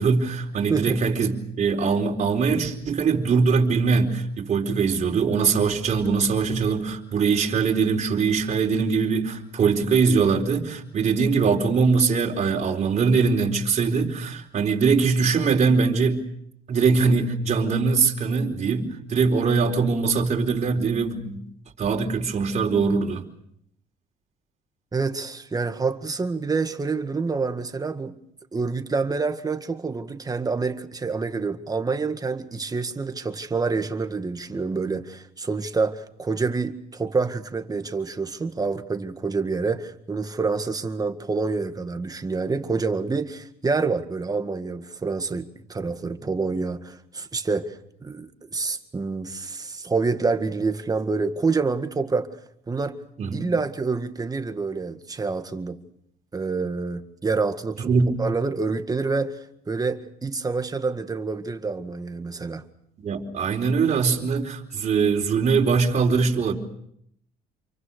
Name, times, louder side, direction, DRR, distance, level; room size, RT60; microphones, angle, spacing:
voice 1, 0.0-16.2 16.7-21.4 21.8-23.2 53.2-53.4 57.8-58.2 63.0-66.5, right 5 dB, 45° right, 4.5 m, -22 dB
voice 2, 0.7-1.0 24.9-28.2 28.5-52.3 52.7-53.0 53.3-55.8 56.3-57.9 58.2-62.6, right 4 dB, 20° right, 1.9 m, -27 dB
28.5 x 23.5 x 6.6 m
cardioid pair, 110°, 17 cm